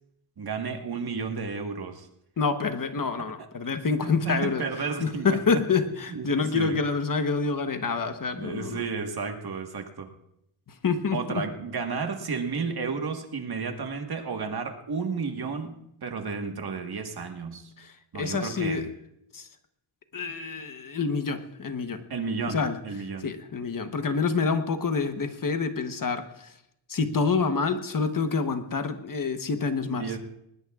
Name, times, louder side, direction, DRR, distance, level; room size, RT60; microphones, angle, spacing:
voice 1, 0.4-2.1 4.0-5.4 6.1-6.3 6.5-6.8 8.4-10.1 11.1-17.7 18.1-18.8 22.1-22.6 22.8-23.3 29.9-30.2, right 5 dB, 50° right, 4 dB, 1.5 m, -32 dB
voice 2, 2.4-4.6 5.0-8.8 10.7-11.4 17.8-18.9 19.3-19.5 20.1-22.0 22.5-22.8 23.2-26.6 26.9-30.2, left 4 dB, 45° left, 8 dB, 1.1 m, -27 dB
21.0 x 20.0 x 2.4 m, 0.81 s
wide cardioid pair, 140°, 48 cm